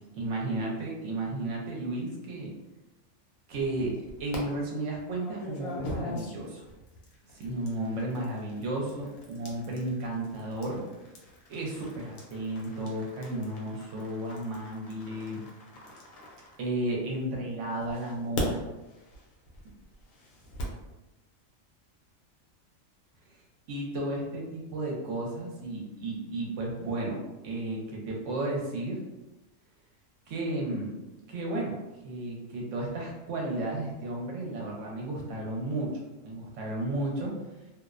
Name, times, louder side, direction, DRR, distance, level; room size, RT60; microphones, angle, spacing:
voice 1, 0.1-2.5 3.5-6.6 7.3-10.8 11.5-15.4 16.6-18.6 23.7-27.2 27.4-29.0 30.3-30.9 31.3-31.8 32.0-35.9 36.2-37.3, right 2 dB, 70° right, -2 dB, 0.9 m, -33 dB
sound 1, 3.5-4.4 5.1-17.2 17.8-20.8, left 1 dB, 85° left, 1.0 m, -42 dB
2.5 x 2.0 x 2.4 m, 1.0 s
omnidirectional pair, 1.4 m